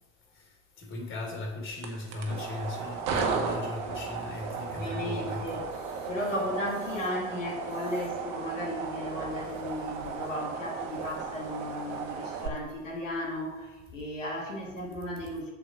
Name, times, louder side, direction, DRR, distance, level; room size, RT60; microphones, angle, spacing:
voice 1, 0.8-6.1, left 2 dB, 30° left, 1 dB, 3.5 m, -37 dB
sound 1, 1.7-12.5, right 5 dB, 50° right, 1.9 m, -35 dB
voice 2, 4.6-5.7 6.1-15.5, left 1 dB, 80° left, -2 dB, 2.6 m, -35 dB
7.7 x 7.0 x 6.3 m, 1.1 s
figure-of-eight pair, 80°, 38 cm